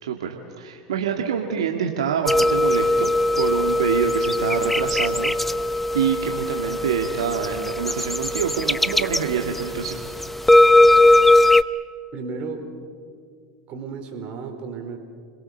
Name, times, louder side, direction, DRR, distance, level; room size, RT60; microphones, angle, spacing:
voice 1, 0.0-3.1 3.4-5.3 5.9-10.0, right 8 dB, 75° right, 2 dB, 1.9 m, -26 dB
sound 1, 2.3-11.6, left 1 dB, 5° left, 0.7 m, -19 dB
voice 2, 12.1-12.8 13.7-15.0, right 4 dB, 40° right, 5 dB, 4.2 m, -33 dB
30.0 x 22.0 x 6.6 m, 2.2 s
hypercardioid pair, 85°, 3 cm